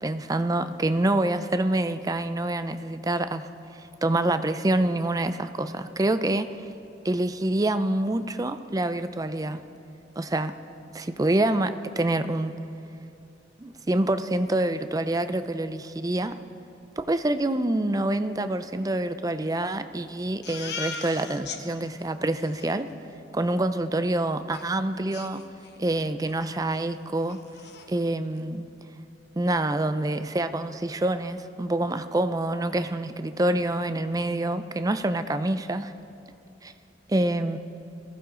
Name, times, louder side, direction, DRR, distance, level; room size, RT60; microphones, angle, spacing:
voice 1, 0.0-3.5 4.0-6.5 7.0-9.6 10.2-10.5 10.9-12.5 13.6-16.4 17.0-22.9 23.3-25.4 25.8-27.4 27.9-28.7 29.3-35.9 36.6-36.7 37.1-37.6, right 1 dB, 20° right, 10 dB, 0.5 m, -26 dB
Crying sobbing, 20.4-21.6 22.0-22.1 22.3-22.7 24.5-24.6 25.1-25.9 26.2-26.4 26.8-26.9 27.2-27.9, left 5 dB, 60° left, 1.0 m, -38 dB
21.5 x 14.5 x 3.8 m, 2.7 s
head